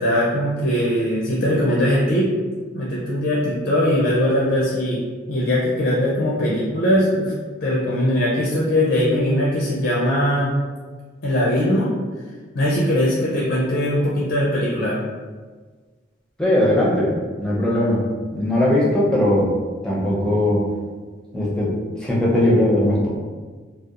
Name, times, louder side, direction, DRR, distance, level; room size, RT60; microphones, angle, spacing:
voice 1, 0.0-2.3 2.7-5.0 5.3-7.3 7.6-10.5 11.2-11.9 12.5-15.0, equal, 65° left, -5 dB, 0.4 m, -20 dB
voice 2, 16.4-17.1 17.4-19.5 19.8-20.7 21.3-21.7 22.0-23.1, left 1 dB, 5° left, -6 dB, 0.5 m, -19 dB
2.8 x 2.0 x 2.4 m, 1.4 s
head